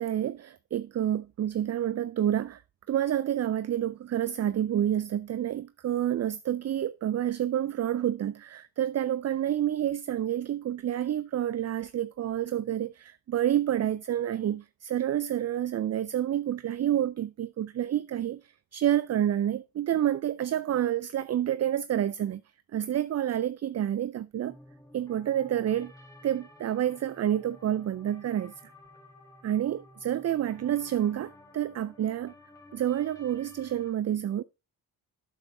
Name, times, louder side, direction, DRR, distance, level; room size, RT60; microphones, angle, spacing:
voice 1, 0.0-2.6 2.9-22.4 22.7-24.6 24.9-25.9 26.2-28.5 29.4-32.3 32.7-34.4, right 11 dB, 35° right, 0.4 m, -29 dB
sound 1, 24.5-33.9, left 1 dB, 5° left, 2.4 m, -53 dB
8.0 x 7.1 x 3.4 m
supercardioid pair, 50°, 48 cm